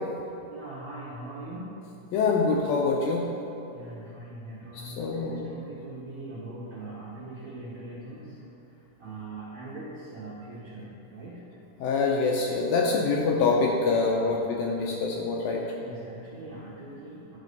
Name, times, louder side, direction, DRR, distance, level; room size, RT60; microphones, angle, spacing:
voice 1, 0.5-1.7 3.7-8.4 9.0-11.5 14.3-14.4 15.8-17.4, right 2 dB, 75° right, -7 dB, 1.7 m, -41 dB
voice 2, 2.1-3.3 4.7-5.5 11.8-15.6, left 4 dB, 80° left, -1 dB, 2.1 m, -25 dB
11.0 x 4.2 x 5.2 m, 2.8 s
omnidirectional pair, 4.7 m